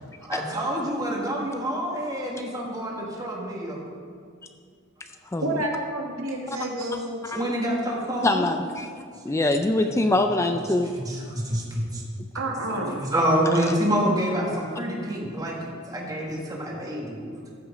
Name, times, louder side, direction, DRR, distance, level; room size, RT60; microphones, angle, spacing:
voice 1, 0.2-3.8 7.3-8.5 10.9-12.0 12.7-17.3, equal, 20° right, -2 dB, 1.7 m, -27 dB
voice 2, 5.4-7.2 12.3-13.0, right 1 dB, 85° right, 0 dB, 1.6 m, -29 dB
voice 3, 8.2-8.9 9.3-10.9, left 2 dB, 15° left, 6 dB, 0.4 m, -23 dB
14.0 x 6.0 x 5.0 m, 2.2 s
head